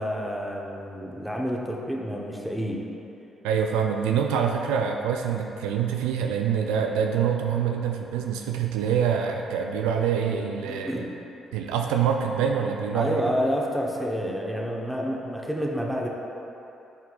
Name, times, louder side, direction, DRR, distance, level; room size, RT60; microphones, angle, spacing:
voice 1, 0.0-2.8 10.7-11.1 12.9-16.1, equal, 5° right, -2 dB, 1.0 m, -29 dB
voice 2, 3.4-11.0 11.5-13.2, right 7 dB, 75° right, 3 dB, 0.3 m, -25 dB
9.5 x 4.5 x 2.4 m, 2.9 s
hypercardioid pair, 45°, 0 cm